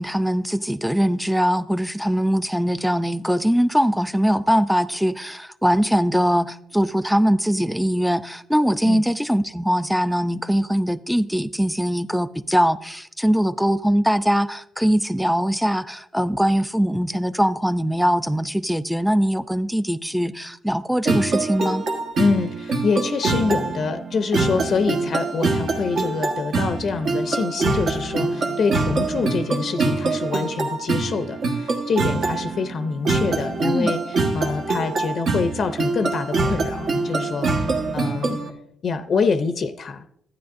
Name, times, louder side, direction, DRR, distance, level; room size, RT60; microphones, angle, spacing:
voice 1, 0.0-21.8 33.6-33.9, equal, ahead, 0.4 m, -21 dB
sound 1, 21.0-38.5, right 3 dB, 60° right, 1.3 m, -24 dB
voice 2, 22.2-38.4 38.8-40.1, left 4 dB, 55° left, 0.5 m, -25 dB
12.0 x 9.4 x 2.6 m
cardioid pair, 90°, 0 cm